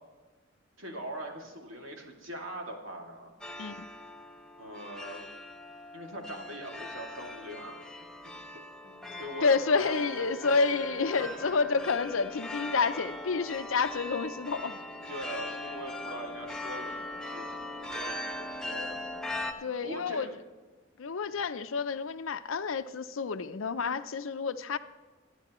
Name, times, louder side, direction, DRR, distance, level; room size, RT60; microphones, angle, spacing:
voice 1, 0.8-3.3 4.6-5.2 5.9-7.8 8.2-10.3 11.2-11.3 15.1-19.5 19.8-20.3 21.2-21.4, equal, 85° right, 2.4 m, -42 dB
sound 1, 3.4-19.5, left 1 dB, 5° left, 0.8 m, -40 dB
voice 2, 9.4-14.8 19.6-20.3 21.0-24.8, left 4 dB, 85° left, 0.6 m, -29 dB
24.5 x 9.9 x 3.1 m
head